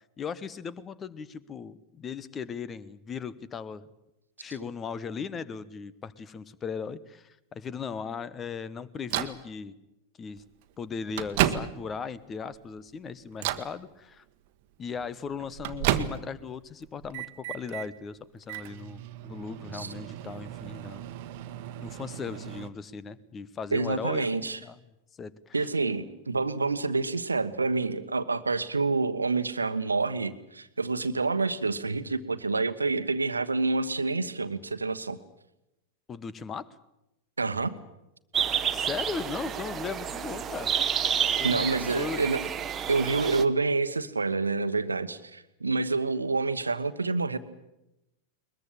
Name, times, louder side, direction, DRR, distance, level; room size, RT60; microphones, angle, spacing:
voice 1, 0.2-3.8 4.4-9.8 10.2-10.4 10.8-14.2 14.8-21.1 21.8-24.8 25.2-25.7 36.1-36.7 38.7-40.7 41.4-41.7 42.0-42.2, left 6 dB, 20° left, 18 dB, 1.2 m, -37 dB
Microwave oven, 9.1-9.4 10.4-10.5 10.9-12.0 12.5-12.9 13.3-13.7 15.0-16.5 16.8-17.9 18.4-22.7, right 12 dB, 45° right, 1.3 m, -33 dB
voice 2, 23.7-24.6 25.5-35.2 37.4-37.8 41.4-42.4 42.9-47.4, right 3 dB, 80° right, 11 dB, 1.2 m, -28 dB
sound 1, 38.3-43.4, right 8 dB, 25° right, 1.3 m, -29 dB
21.5 x 21.5 x 8.7 m, 0.89 s
figure-of-eight pair, 90°, 0 cm